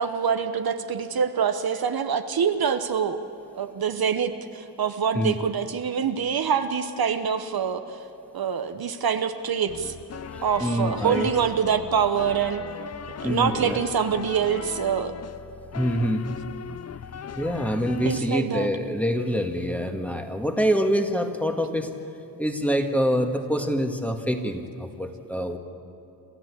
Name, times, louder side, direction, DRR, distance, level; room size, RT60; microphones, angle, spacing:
voice 1, 0.0-3.2 3.5-8.0 8.3-9.9 10.4-12.6 13.2-15.1 18.0-18.7, right 7 dB, 60° right, 8 dB, 1.0 m, -25 dB
sound 1, 9.7-18.2, left 7 dB, 40° left, 0.6 m, -39 dB
voice 2, 10.3-11.3 13.2-13.8 15.7-16.3 17.4-21.9 22.4-25.6, equal, 5° left, 4 dB, 1.8 m, -25 dB
27.5 x 14.0 x 8.5 m, 2.7 s
wide cardioid pair, 100°, 40 cm